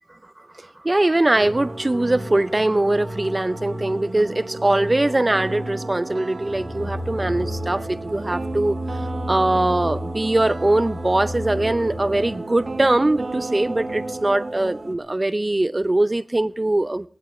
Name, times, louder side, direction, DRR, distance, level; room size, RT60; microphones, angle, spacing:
voice 1, 0.8-8.8 9.3-17.1, right 2 dB, 35° right, 0.7 m, -21 dB
sound 1, 1.3-15.0, equal, 55° right, 2.5 m, -33 dB
sound 2, 5.3-14.5, right 3 dB, 90° right, 1.8 m, -35 dB
18.5 x 18.0 x 3.3 m
wide cardioid pair, 70°, 0 cm